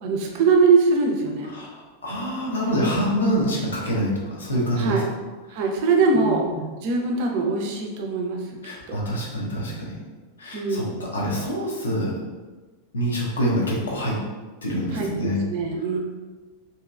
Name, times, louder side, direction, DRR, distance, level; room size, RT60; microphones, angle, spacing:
voice 1, 0.0-1.5 4.8-5.0 5.5-6.4 6.8-8.4 8.9-9.0 10.5-11.0 14.9-16.0, right 4 dB, 45° right, 1 dB, 0.5 m, -22 dB
voice 2, 1.4-5.0 6.1-6.6 8.6-10.0 10.4-12.1 12.9-14.2 14.6-15.4, equal, 70° left, -4 dB, 0.8 m, -26 dB
2.9 x 2.8 x 2.4 m, 1.3 s
figure-of-eight pair, 90°, 0 cm